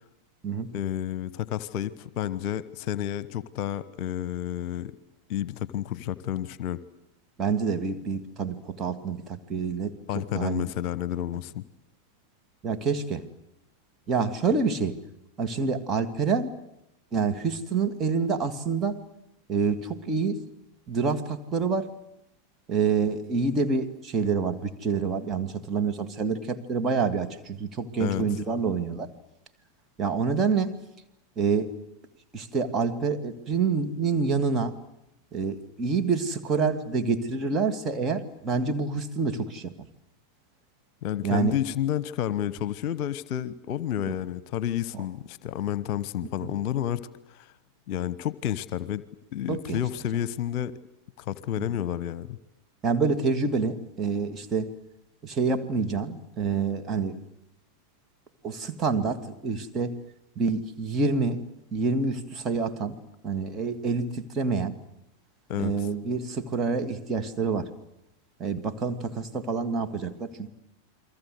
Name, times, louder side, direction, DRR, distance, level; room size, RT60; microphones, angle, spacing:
voice 1, 0.7-4.9 5.3-6.8 10.1-11.6 28.0-28.2 41.0-47.0 47.3-47.5 47.9-49.0 49.3-50.7 51.2-52.4 65.5-65.7, left 11 dB, 45° left, 18 dB, 1.1 m, -30 dB
voice 2, 7.4-10.7 12.6-13.2 14.1-15.0 15.4-16.5 17.1-19.0 19.5-20.4 20.9-21.9 22.7-29.1 30.0-30.8 31.4-31.7 32.3-34.7 35.3-39.9 41.2-41.6 44.1-44.2 44.9-45.0 46.4-46.5 49.5-49.8 51.6-51.7 52.8-54.7 55.2-57.2 58.4-59.9 60.4-61.4 61.7-63.0 63.2-64.8 65.6-67.7 68.4-70.5, right 4 dB, 25° right, 7 dB, 2.6 m, -27 dB
29.5 x 23.0 x 8.0 m, 0.85 s
figure-of-eight pair, 90°, 0 cm